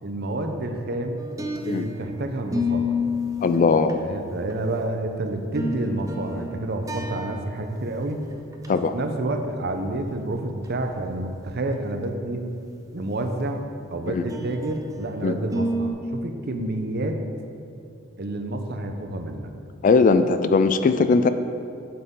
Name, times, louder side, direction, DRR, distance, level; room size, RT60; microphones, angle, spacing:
voice 1, 0.0-1.2 1.6-3.0 3.9-8.2 8.7-12.5 12.9-17.2 18.2-19.5, right 1 dB, 55° right, 5 dB, 0.7 m, -29 dB
sound 1, 1.2-2.1 2.5-4.7 5.3-7.7 8.0-8.1 8.5-8.7 10.1-10.2 10.6-10.8 14.3-15.0 15.5-15.9, left 2 dB, 15° right, 0.6 m, -30 dB
voice 2, 3.4-4.0 8.7-8.9 14.1-14.2 15.2-15.4 19.8-21.3, left 4 dB, 40° left, 11 dB, 0.3 m, -19 dB
7.8 x 7.6 x 3.7 m, 2.4 s
head